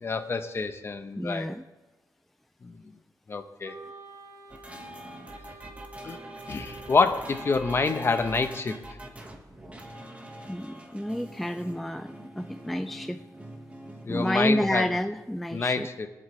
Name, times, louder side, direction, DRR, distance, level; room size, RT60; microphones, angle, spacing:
voice 1, 0.0-1.5 2.6-2.7 3.3-3.8 6.0-6.2 6.5-8.7 14.0-14.9 15.5-16.1, left 4 dB, 35° left, 7 dB, 0.9 m, -27 dB
voice 2, 1.2-1.6 10.5-13.2 14.1-15.9, equal, ahead, 8 dB, 0.3 m, -30 dB
Wind instrument woodwind instrument, 3.6-8.8, right 3 dB, 45° right, 2.4 m, -49 dB
sound 1, 4.5-15.1, right 1 dB, 20° right, 1.6 m, -44 dB
23.5 x 8.0 x 3.3 m, 1.1 s
wide cardioid pair, 145°, 7 cm